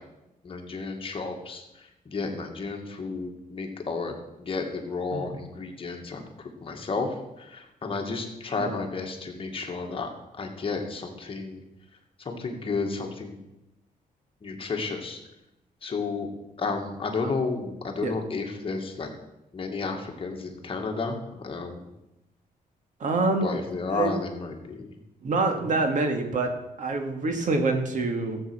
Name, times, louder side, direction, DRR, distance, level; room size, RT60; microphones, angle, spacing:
voice 1, 0.4-1.6 2.1-4.1 4.4-7.1 7.4-10.1 10.4-11.6 12.3-13.4 14.4-15.2 15.8-16.3 16.6-19.1 19.5-21.2 21.4-21.8 23.4-24.9 25.7-25.8, left 4 dB, 35° left, 2 dB, 2.1 m, -32 dB
voice 2, 23.0-23.5 23.9-24.1 25.2-28.4, right 3 dB, 55° right, 5 dB, 2.1 m, -26 dB
15.0 x 8.1 x 6.3 m, 0.91 s
cardioid pair, 135°, 15 cm